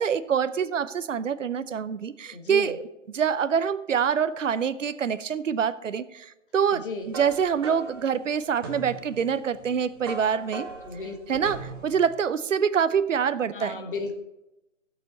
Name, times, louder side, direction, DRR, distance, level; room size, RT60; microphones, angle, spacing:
voice 1, 0.0-2.8 3.1-10.7 11.3-11.6 11.8-13.8, right 7 dB, 75° right, 14 dB, 0.7 m, -25 dB
voice 2, 2.3-2.8 6.7-7.1 10.5-11.4 13.5-14.2, left 3 dB, 45° left, 4 dB, 1.5 m, -35 dB
sound 1, 6.7-12.1, right 3 dB, 20° right, 0.9 m, -40 dB
14.0 x 6.8 x 4.0 m, 0.94 s
figure-of-eight pair, 155°, 38 cm